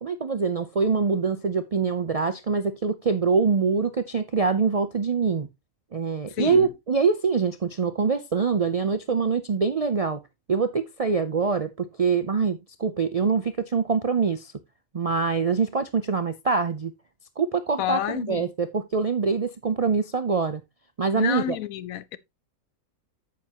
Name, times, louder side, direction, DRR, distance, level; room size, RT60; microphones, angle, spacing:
voice 1, 0.0-5.5 5.9-10.2 10.5-14.5 14.9-16.9 17.4-20.6 21.0-21.6, right 5 dB, 55° right, 0.4 m, -24 dB
voice 2, 6.3-6.7 17.8-18.5 21.1-22.2, left 11 dB, 80° left, 1.1 m, -29 dB
9.3 x 7.7 x 2.9 m
omnidirectional pair, 1.4 m